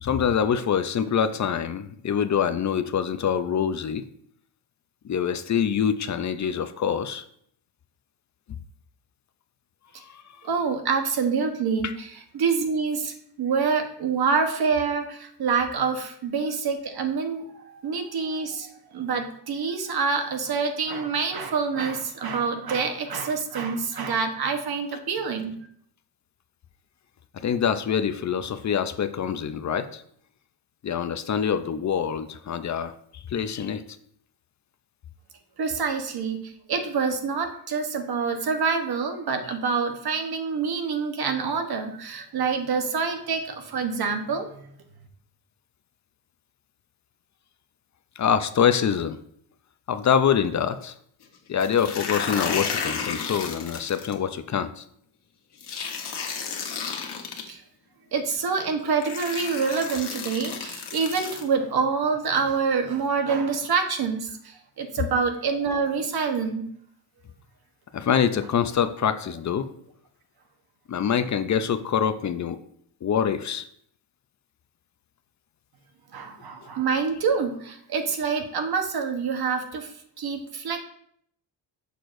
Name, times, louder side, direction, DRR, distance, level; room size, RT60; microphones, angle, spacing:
voice 1, 0.0-4.0 5.0-7.2 10.0-10.2 11.8-11.9 27.3-30.0 30.8-33.8 48.2-49.2 49.9-50.9 51.5-54.8 56.0-56.3 67.9-69.7 70.9-72.6 73.0-73.7, left 8 dB, 45° left, 11 dB, 0.5 m, -25 dB
voice 2, 10.4-25.5 35.6-36.4 36.7-44.7 57.5-57.6 58.1-66.7 76.1-79.9 80.2-80.8, right 5 dB, 60° right, 5 dB, 1.1 m, -26 dB
sound 1, 51.6-54.1 55.6-57.4 58.4-58.5 59.0-61.4, left 6 dB, 65° left, 1.3 m, -32 dB
6.7 x 5.9 x 2.6 m, 0.67 s
cardioid pair, 100°, 42 cm